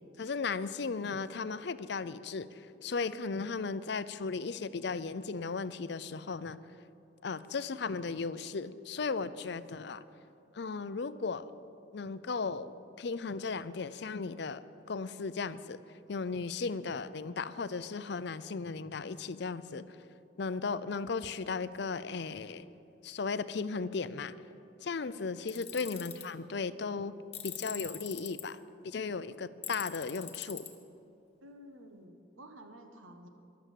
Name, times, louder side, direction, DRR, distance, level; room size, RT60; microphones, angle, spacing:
voice 1, 0.2-6.6 7.2-10.0 10.5-11.5 11.9-12.7 13.0-15.8 16.1-20.0 20.4-22.7 23.0-24.4 24.8-27.1 27.4-30.7, left 4 dB, 55° left, 15 dB, 0.5 m, -36 dB
Tools, 25.5-26.2 27.3-28.4 29.6-30.7, left 10 dB, 30° left, 1.3 m, -42 dB
voice 2, 31.4-33.3, equal, 85° right, 5 dB, 1.5 m, -52 dB
13.5 x 11.5 x 7.5 m, 2.7 s
head